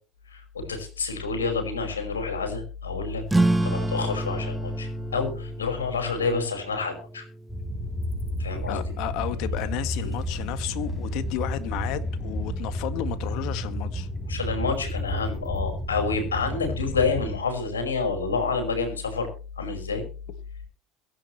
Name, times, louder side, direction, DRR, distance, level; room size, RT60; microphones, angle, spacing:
voice 1, 0.3-3.2 3.6-7.2 8.4-8.8 10.0-10.2 14.3-19.3 19.6-20.1, left 4 dB, 85° left, 5.4 m, -28 dB
sound 1, 3.3-8.4, right 2 dB, 10° right, 1.8 m, -29 dB
sound 2, 7.5-17.4, left 1 dB, 5° left, 7.2 m, -31 dB
voice 2, 8.7-14.1, left 13 dB, 60° left, 1.8 m, -32 dB
22.5 x 11.0 x 3.2 m
hypercardioid pair, 70°, 0 cm